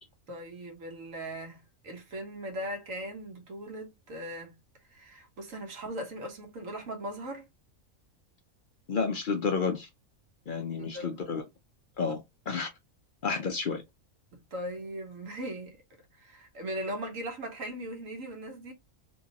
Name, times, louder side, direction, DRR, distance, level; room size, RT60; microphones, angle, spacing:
voice 1, 0.3-4.6 4.9-7.5 10.8-11.2 13.3-13.5 14.3-15.8 16.1-18.7, right 1 dB, 65° right, 1.4 m, -39 dB
voice 2, 8.9-9.9 10.5-11.4 12.0-12.7 13.2-13.8, left 5 dB, 60° left, 0.5 m, -30 dB
3.2 x 3.1 x 2.7 m
omnidirectional pair, 1.5 m